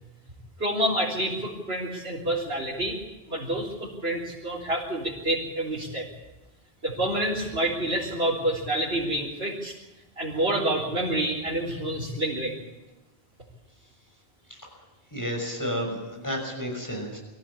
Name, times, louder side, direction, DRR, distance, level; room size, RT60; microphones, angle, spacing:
voice 1, 0.6-3.0 3.3-6.1 6.8-9.7 10.2-12.6, right 1 dB, 80° right, -6 dB, 4.1 m, -28 dB
voice 2, 15.1-17.2, equal, 20° left, 1 dB, 6.2 m, -31 dB
23.5 x 14.5 x 8.6 m, 1.1 s
omnidirectional pair, 1.0 m